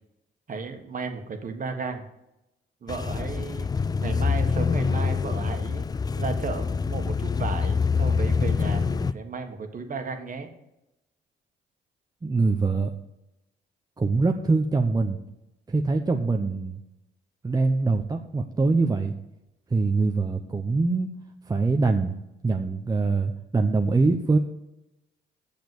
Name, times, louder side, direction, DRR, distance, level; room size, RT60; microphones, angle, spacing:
voice 1, 0.5-2.0 2.8-3.7 4.0-5.9 6.2-10.5, right 4 dB, 40° right, 6 dB, 1.6 m, -34 dB
sound 1, 2.9-9.1, left 5 dB, 20° left, 0.3 m, -25 dB
voice 2, 12.2-12.9 14.0-15.2 15.7-16.8 17.4-19.1 19.7-21.1 21.5-22.1 22.4-24.4, right 3 dB, 20° right, 4 dB, 0.7 m, -23 dB
8.0 x 6.8 x 7.8 m, 0.91 s
cardioid pair, 90°, 20 cm